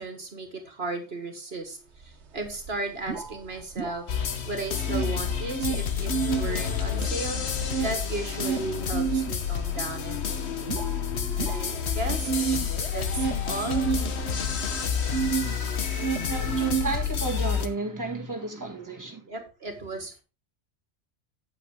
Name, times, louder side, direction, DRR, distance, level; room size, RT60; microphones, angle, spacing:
voice 1, 0.0-4.1 4.4-7.4 7.8-10.9 11.3-12.6 12.9-13.9 18.6-18.8 19.2-20.2, right 2 dB, 65° right, 1.8 m, -35 dB
sound 1, 2.0-2.1 2.4-4.4 4.7-6.5 6.9-15.5 15.8-17.4, right 7 dB, 80° right, 1.5 m, -30 dB
sound 2, 4.1-17.7, left 7 dB, 75° left, 1.4 m, -29 dB
voice 2, 16.2-19.2, right 3 dB, 15° right, 1.9 m, -32 dB
8.5 x 8.3 x 3.6 m
omnidirectional pair, 1.1 m